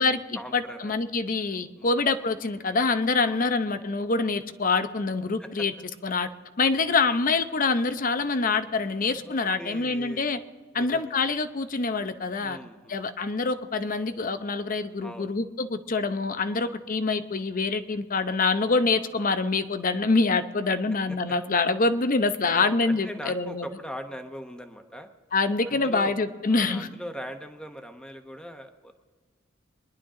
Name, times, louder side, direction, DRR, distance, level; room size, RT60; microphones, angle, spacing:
voice 1, 0.0-1.0 1.8-2.0 3.2-3.4 5.4-5.5 9.1-10.3 10.7-11.1 12.4-13.0 15.0-15.4 16.5-16.8 20.0-20.3 21.1-21.4 22.4-25.1 25.7-26.2 26.5-28.9, equal, 5° left, 6 dB, 1.0 m, -41 dB
voice 2, 0.5-5.7 6.0-6.3 6.6-10.4 10.7-12.6 12.9-23.7 25.3-26.9, left 3 dB, 45° left, 11 dB, 0.7 m, -25 dB
23.0 x 11.0 x 3.8 m, 1.4 s
head